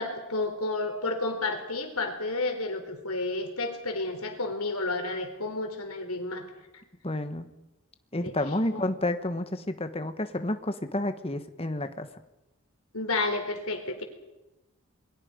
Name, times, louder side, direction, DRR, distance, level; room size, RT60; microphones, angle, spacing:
voice 1, 0.0-6.4 6.7-6.8 8.2-8.3 8.7-8.9 12.9-14.0, left 2 dB, 85° left, 5 dB, 4.2 m, -31 dB
voice 2, 7.0-7.5 8.1-12.1, left 1 dB, 25° left, 9 dB, 1.3 m, -30 dB
28.5 x 22.5 x 5.3 m, 0.99 s
head